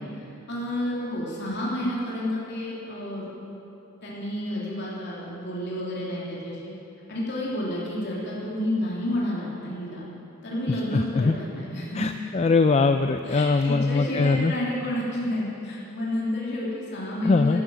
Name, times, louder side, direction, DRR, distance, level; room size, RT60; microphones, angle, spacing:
voice 1, 0.5-3.3 4.0-6.7 7.1-10.0 10.4-12.0 13.3-17.6, left 1 dB, 50° left, -6 dB, 3.0 m, -30 dB
voice 2, 10.7-11.4 11.9-14.5 17.2-17.6, left 3 dB, 30° left, 7 dB, 0.3 m, -22 dB
12.5 x 12.0 x 7.6 m, 2.9 s
head